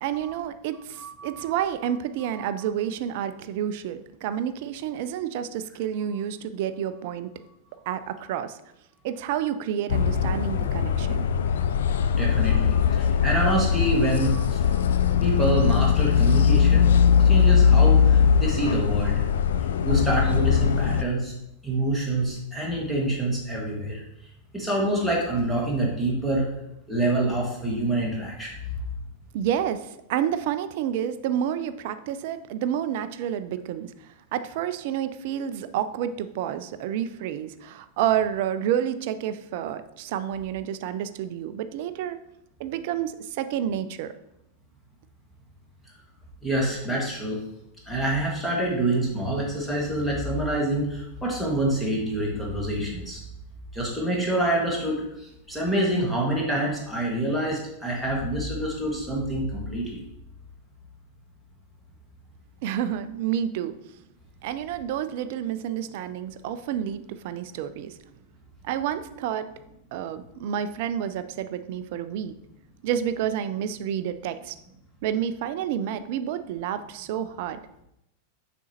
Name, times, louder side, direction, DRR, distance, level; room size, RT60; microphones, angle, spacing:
voice 1, 0.0-7.3 7.9-8.6 9.0-11.3 29.3-42.2 42.6-44.1 62.6-63.7 64.4-68.0 68.6-69.5 69.9-72.4 72.8-74.6 75.0-77.6, right 10 dB, 50° right, 12 dB, 0.3 m, -29 dB
voice 2, 1.0-1.4 11.8-14.9 15.2-16.9 17.2-19.2 19.8-21.3 21.6-24.0 24.5-26.5 26.9-28.7 46.4-47.4 47.9-53.2 53.7-60.0, right 1 dB, ahead, -4 dB, 1.8 m, -26 dB
sound 1, 9.9-21.0, left 7 dB, 60° left, 0.3 m, -20 dB
7.0 x 5.0 x 2.9 m, 0.84 s
figure-of-eight pair, 90°, 0 cm